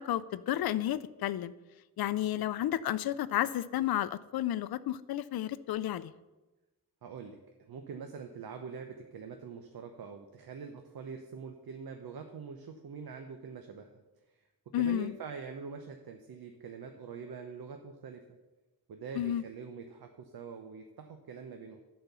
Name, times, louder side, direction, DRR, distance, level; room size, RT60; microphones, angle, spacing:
voice 1, 0.0-1.5 2.0-6.1 14.7-15.1 19.2-19.4, left 12 dB, 80° left, 15 dB, 0.5 m, -32 dB
voice 2, 7.0-13.9 14.3-14.5 14.7-18.4 18.9-21.8, right 5 dB, 80° right, 5 dB, 0.8 m, -44 dB
11.5 x 4.4 x 6.8 m, 1.1 s
wide cardioid pair, 130°, 36 cm